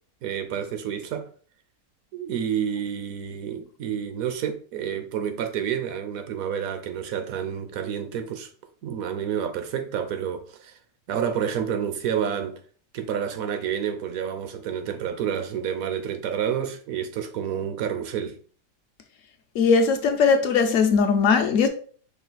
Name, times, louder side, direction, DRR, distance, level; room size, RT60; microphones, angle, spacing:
voice 1, 0.2-1.3 2.1-8.5 8.8-10.8 11.1-12.6 12.9-18.3, right 8 dB, 70° right, 0.9 m, -29 dB
voice 2, 19.5-21.7, left 5 dB, 65° left, 0.8 m, -19 dB
5.5 x 2.4 x 3.9 m
omnidirectional pair, 1.8 m